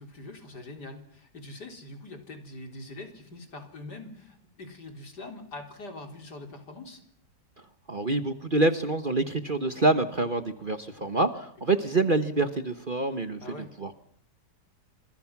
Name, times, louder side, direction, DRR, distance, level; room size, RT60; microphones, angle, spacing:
voice 1, 0.0-7.0 11.7-11.9 13.4-13.7, left 2 dB, 65° left, 4 dB, 4.5 m, -43 dB
voice 2, 7.9-13.4 13.8-13.9, right 2 dB, 30° right, 9 dB, 1.3 m, -26 dB
28.5 x 26.0 x 6.1 m, 0.63 s
omnidirectional pair, 1.9 m